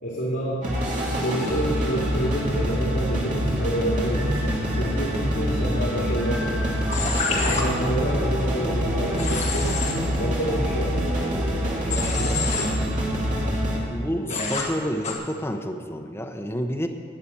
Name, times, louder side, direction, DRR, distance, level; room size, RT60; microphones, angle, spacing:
voice 1, 0.0-6.7 7.3-12.7 14.3-14.7, right 1 dB, 75° left, -5 dB, 2.4 m, -29 dB
sound 1, 0.6-13.8, equal, 40° right, 2.5 m, -25 dB
Human voice / Train, 6.9-7.6 9.2-9.9 11.9-12.6 14.3-14.6 15.0-15.1, left 4 dB, 35° left, 1.9 m, -27 dB
voice 2, 13.9-16.9, equal, 15° left, 3 dB, 0.8 m, -29 dB
19.5 x 6.6 x 7.1 m, 2.1 s
head